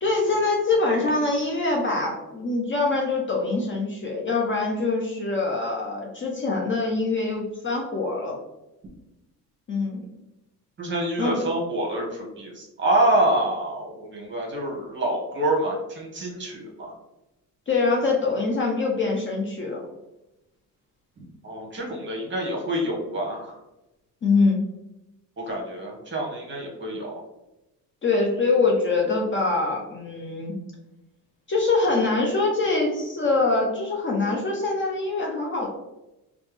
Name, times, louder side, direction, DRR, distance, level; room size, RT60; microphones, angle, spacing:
voice 1, 0.0-8.4 9.7-10.0 11.2-11.3 17.7-19.8 24.2-24.6 28.0-30.5 31.5-35.7, left 3 dB, 30° left, -1 dB, 0.6 m, -24 dB
voice 2, 10.8-16.9 21.4-23.6 25.4-27.1, right 1 dB, 30° right, -1 dB, 1.1 m, -26 dB
3.2 x 2.0 x 3.1 m, 0.94 s
cardioid pair, 90°, 39 cm